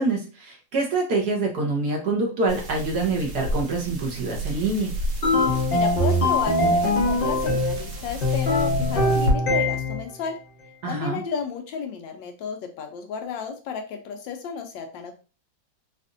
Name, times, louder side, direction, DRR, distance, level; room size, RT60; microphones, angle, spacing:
voice 1, 0.0-4.9 10.8-11.2, right 3 dB, 60° right, 0 dB, 1.4 m, -25 dB
sound 1, 2.5-9.3, equal, 80° right, 2.0 m, -31 dB
sound 2, 5.2-7.8 8.2-10.1, left 1 dB, 45° left, 0.7 m, -22 dB
voice 2, 5.7-10.4 10.9-15.1, left 6 dB, 80° left, 5 dB, 1.3 m, -32 dB
4.2 x 2.5 x 2.5 m, 0.35 s
omnidirectional pair, 2.0 m